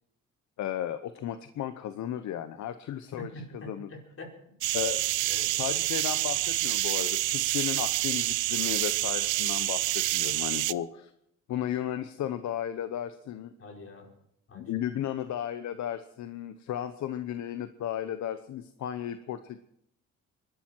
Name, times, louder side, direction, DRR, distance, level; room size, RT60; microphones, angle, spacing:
voice 1, 0.6-3.3 3.7-3.9 4.7-5.0 5.5-11.1 11.5-13.5 14.5-19.6, left 10 dB, 70° left, 11 dB, 0.9 m, -34 dB
voice 2, 3.2-4.3 4.7-4.9 5.2-5.5 13.6-14.1 14.5-14.7, left 1 dB, 45° left, 0 dB, 5.3 m, -45 dB
sound 1, 4.6-10.7, right 17 dB, 80° right, 0.5 m, -28 dB
23.5 x 12.5 x 4.6 m, 0.75 s
cardioid pair, 90°, 30 cm